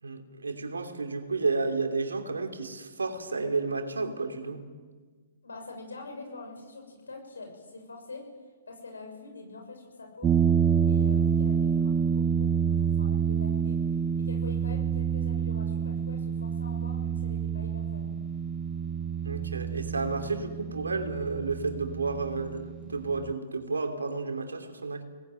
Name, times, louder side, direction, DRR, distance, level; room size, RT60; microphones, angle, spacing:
voice 1, 0.0-4.6 19.2-25.0, right 3 dB, 80° right, 5 dB, 3.2 m, -31 dB
voice 2, 5.4-8.3 8.7-10.4 10.9-13.8 14.1-18.2, left 3 dB, 80° left, 3 dB, 6.4 m, -45 dB
sound 1, 10.2-23.3, right 7 dB, 20° right, 1.2 m, -28 dB
25.5 x 19.5 x 9.1 m, 1.5 s
figure-of-eight pair, 115°, 0 cm